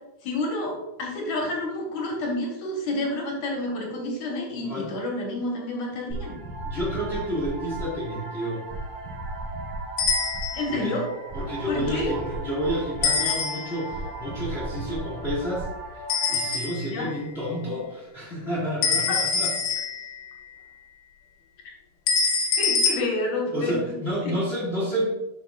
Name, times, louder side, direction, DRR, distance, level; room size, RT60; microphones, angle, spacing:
voice 1, 0.2-6.3 10.5-11.1 11.7-12.1 16.9-17.1 19.1-19.2 22.6-23.7 24.2-24.3, left 2 dB, 60° left, -1 dB, 2.2 m, -29 dB
sound 1, 6.1-16.5, right 2 dB, 55° right, 2.8 m, -35 dB
voice 2, 6.6-8.7 10.7-11.0 11.3-15.7 15.9-19.5 23.5-25.1, equal, 30° left, -6 dB, 1.1 m, -30 dB
sound 2, 10.0-10.8 13.0-13.9 16.1-17.0 18.8-20.3 22.1-22.9, left 5 dB, 75° left, 2.5 m, -25 dB
12.0 x 5.2 x 2.4 m, 0.97 s
omnidirectional pair, 4.5 m